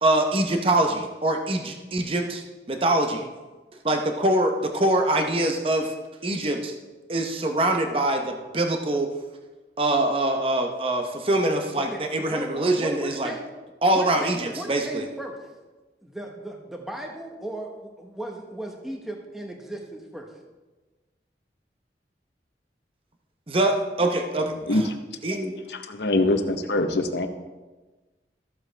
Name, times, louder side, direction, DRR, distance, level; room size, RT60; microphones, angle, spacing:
voice 1, 0.0-2.4 2.7-3.3 3.8-5.9 6.2-6.7 7.1-9.1 9.8-13.3 13.8-15.0 23.5-24.5 25.2-25.6, right 1 dB, 30° right, 4 dB, 0.7 m, -24 dB
voice 2, 11.8-13.4 13.9-15.4 16.0-20.3, right 1 dB, ahead, 1 dB, 1.1 m, -36 dB
voice 3, 24.4-24.8 25.7-27.3, left 2 dB, 80° left, 7 dB, 0.8 m, -24 dB
13.5 x 7.5 x 3.3 m, 1.2 s
head